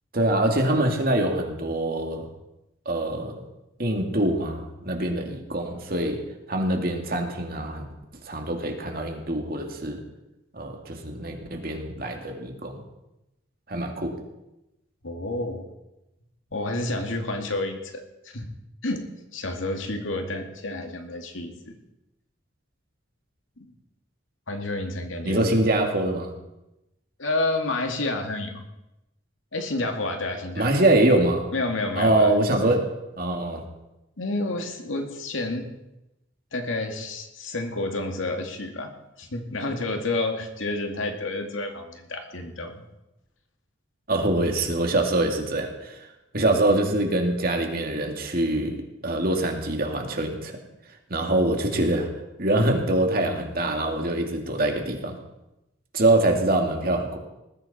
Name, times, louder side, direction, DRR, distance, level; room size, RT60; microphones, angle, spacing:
voice 1, 0.1-2.3 2.9-3.4 3.8-6.2 6.5-7.8 8.2-10.0 10.5-12.8 13.7-14.1 25.3-26.3 30.6-31.5 31.9-32.9 33.2-33.6 44.1-46.0 46.3-48.8 49.0-50.5 51.1-52.1 52.4-55.2 55.9-57.2, right 1 dB, 50° right, 2 dB, 2.5 m, -24 dB
voice 2, 15.0-15.7 16.5-18.5 18.8-21.8 23.6-23.7 24.5-25.6 27.2-28.6 29.5-30.9 31.5-32.3 32.6-32.8 34.2-35.7 36.5-42.8, left 2 dB, 80° left, 4 dB, 2.3 m, -30 dB
20.0 x 14.5 x 4.4 m, 0.93 s
head